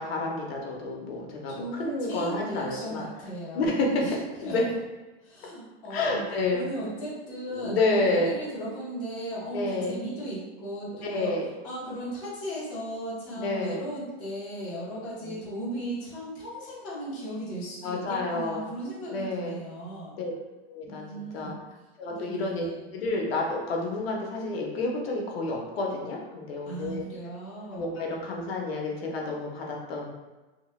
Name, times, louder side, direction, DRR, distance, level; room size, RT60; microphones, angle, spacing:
voice 1, 0.0-3.1 3.5-4.6 5.9-6.7 7.5-8.3 9.5-10.0 11.1-11.5 13.4-13.8 15.2-15.4 17.8-18.7 19.1-19.6 20.1-20.3 20.7-21.5 22.0-22.7 22.9-27.0 27.7-30.1, left 2 dB, 65° left, 0 dB, 0.7 m, -29 dB
voice 2, 1.5-4.5 5.2-6.2 6.5-11.3 11.6-20.2 20.9-21.6 22.1-22.8 26.7-27.9, right 1 dB, 15° left, -10 dB, 0.6 m, -36 dB
2.8 x 2.1 x 3.0 m, 1.2 s
supercardioid pair, 180°, 32 cm